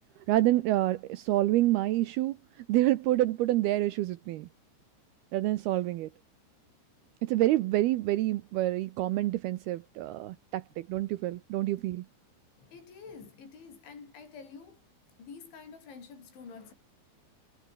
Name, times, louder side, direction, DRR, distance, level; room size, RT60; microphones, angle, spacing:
voice 1, 0.3-2.4 2.7-4.5 5.3-6.1 7.2-12.0, right 16 dB, 80° right, 2.3 m, -27 dB
voice 2, 12.6-14.8 15.2-16.7, left 5 dB, 70° left, 9.2 m, -48 dB
omnidirectional pair, 5.5 m